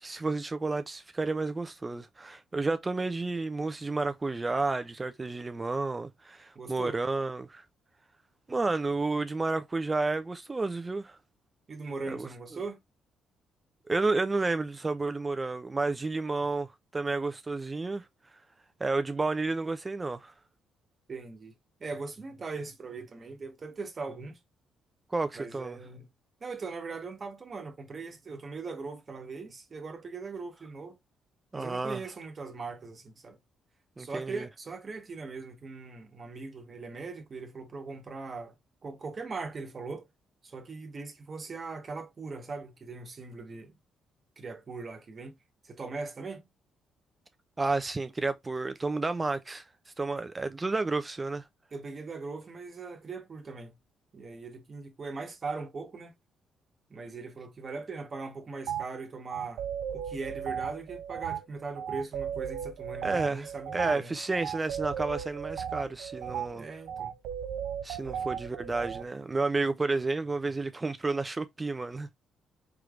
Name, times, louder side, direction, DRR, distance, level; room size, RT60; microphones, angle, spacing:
voice 1, 0.0-7.6 8.5-11.2 12.1-12.3 13.9-18.1 18.8-20.3 25.1-25.8 31.5-32.0 34.0-34.5 47.6-49.6 50.0-51.4 63.0-66.6 67.8-72.1, right 3 dB, 25° right, 0.4 m, -31 dB
voice 2, 6.5-7.0 11.7-12.8 21.1-21.5 21.8-24.4 25.4-26.1 26.4-31.0 31.5-33.4 34.0-38.5 38.8-40.1 40.4-43.7 44.4-45.3 45.6-46.4 51.7-53.7 54.1-56.1 56.9-59.6 59.9-64.1 66.5-67.1 68.0-68.3, right 4 dB, 40° right, 1.2 m, -40 dB
sound 1, 58.7-58.9 59.3-69.0, right 8 dB, 85° right, 0.5 m, -36 dB
4.6 x 3.2 x 2.5 m
cardioid pair, 90°, 0 cm